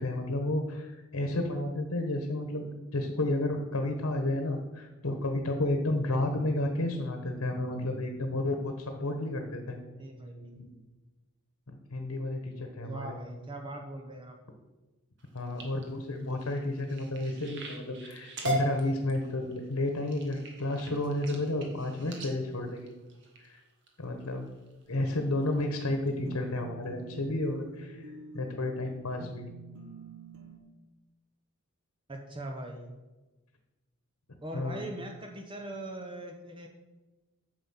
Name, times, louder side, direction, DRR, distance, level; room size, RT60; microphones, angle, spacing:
voice 1, 0.0-9.8 10.6-10.7 11.7-13.2 15.3-22.9 23.4-23.6 24.0-24.5 24.9-29.5 34.5-34.8, left 1 dB, 75° left, 4 dB, 1.1 m, -32 dB
voice 2, 10.0-10.9 12.8-14.4 32.1-33.0 34.4-36.7, right 1 dB, 20° right, 3 dB, 0.8 m, -41 dB
sound 1, 15.2-23.9 24.5-24.8 25.2-25.6 26.1-26.2 26.5-26.6, right 2 dB, 55° right, 1.9 m, -40 dB
sound 2, 26.3-30.6, right 4 dB, 75° right, 1.4 m, -47 dB
9.3 x 7.0 x 5.7 m, 1.2 s
head